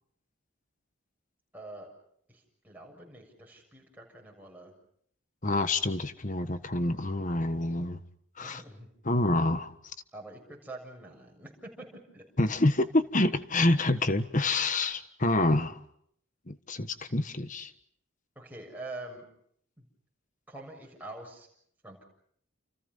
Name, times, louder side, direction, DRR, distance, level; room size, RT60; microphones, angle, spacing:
voice 1, 1.5-1.9 2.3-4.7 8.4-8.9 10.1-11.9 12.1-12.3 18.4-19.2 19.8-19.9 20.5-21.5 21.8-22.0, right 2 dB, 10° right, -1 dB, 7.1 m, -45 dB
voice 2, 5.4-8.0 8.4-8.6 9.0-9.7 12.4-15.8 16.5-17.7, left 2 dB, 35° left, 11 dB, 1.4 m, -27 dB
30.0 x 29.5 x 5.6 m, 0.67 s
head